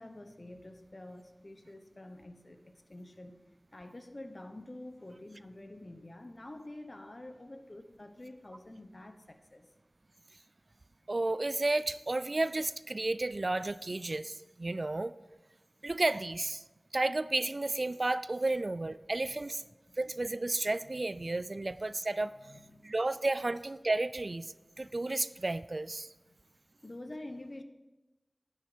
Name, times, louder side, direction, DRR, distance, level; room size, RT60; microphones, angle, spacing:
voice 1, 0.0-3.4 3.7-9.7 19.6-20.0 20.8-20.9 22.4-23.0 23.5-23.6 24.8-24.9 26.3-26.4 26.8-27.6, left 1 dB, 45° left, 7 dB, 1.1 m, -48 dB
voice 2, 11.1-15.1 15.8-16.6 16.9-19.6 20.0-22.3 22.8-26.1, right 2 dB, 55° right, 15 dB, 0.3 m, -32 dB
9.7 x 9.5 x 5.1 m, 1.1 s
wide cardioid pair, 50°, 0 cm